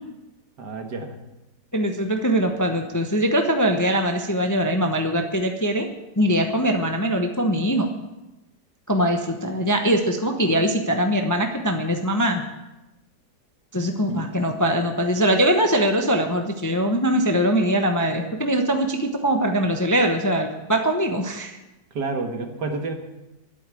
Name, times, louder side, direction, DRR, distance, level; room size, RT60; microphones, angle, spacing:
voice 1, 0.6-1.1 14.1-14.3 21.9-22.9, right 3 dB, 70° right, 4 dB, 2.2 m, -29 dB
voice 2, 1.7-5.9 6.2-7.9 8.9-12.4 13.7-21.6, equal, 15° left, 4 dB, 0.7 m, -22 dB
11.5 x 9.0 x 8.3 m, 0.99 s
omnidirectional pair, 1.9 m